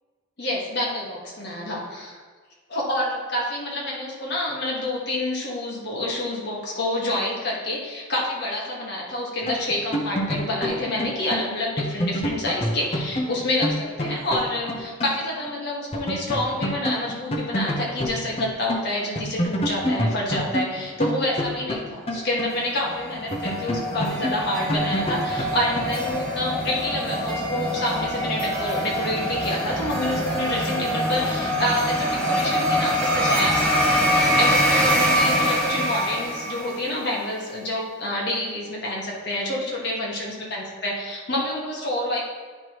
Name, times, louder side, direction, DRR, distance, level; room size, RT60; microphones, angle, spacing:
voice 1, 0.4-2.2 2.7-42.2, left 1 dB, 55° left, -3 dB, 1.5 m, -28 dB
sound 1, 9.4-15.2 15.5-15.6 15.9-18.9 19.2-22.9 23.3-26.1, equal, 30° left, 0.7 m, -28 dB
sound 2, 22.4-37.0, equal, 5° left, 1.2 m, -24 dB
9.5 x 4.7 x 3.0 m, 1.5 s
head